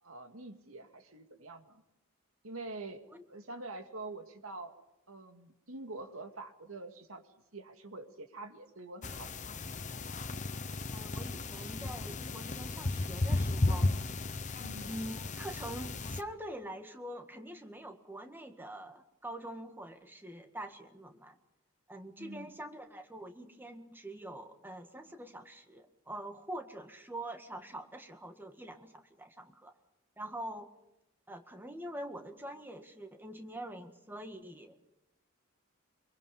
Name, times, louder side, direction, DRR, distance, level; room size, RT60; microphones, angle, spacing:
voice 1, 0.0-1.8 2.4-3.0 3.3-4.7 5.1-7.2 7.5-9.3 14.6-15.0 22.2-22.5, right 2 dB, 85° right, 6 dB, 2.3 m, -45 dB
sound 1, 9.0-16.2, left 2 dB, 35° left, 1.0 m, -34 dB
voice 2, 10.9-13.9 14.9-21.4 21.9-29.7 30.2-30.7 31.3-34.7, right 1 dB, 10° right, 6 dB, 1.8 m, -45 dB
24.5 x 24.0 x 5.5 m, 0.93 s
head